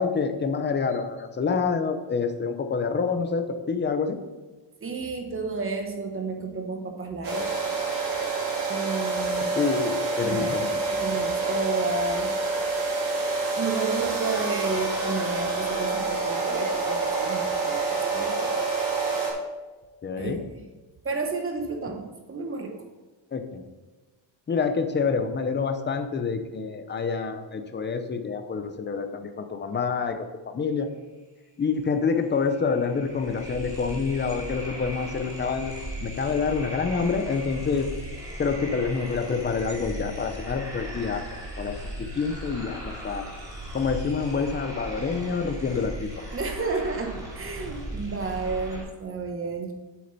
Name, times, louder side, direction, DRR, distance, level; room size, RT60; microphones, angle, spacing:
voice 1, 0.0-4.2 9.5-10.7 20.0-20.4 23.3-23.6 24.5-30.2 30.5-30.9 31.6-35.7 36.0-37.9 38.4-41.3 41.6-43.2 43.7-46.1, left 5 dB, 25° left, 7 dB, 0.8 m, -27 dB
voice 2, 4.8-7.5 8.7-9.5 10.2-10.5 10.9-12.4 13.5-18.7 20.2-20.6 21.0-22.8 46.3-49.7, right 4 dB, 30° right, 4 dB, 1.2 m, -31 dB
sound 1, 7.2-19.3, right 3 dB, 45° right, 3.1 m, -27 dB
sound 2, 31.8-31.9 32.1-48.8, equal, 10° right, 3.0 m, -37 dB
8.3 x 8.0 x 4.2 m, 1.2 s
cardioid pair, 150°, 46 cm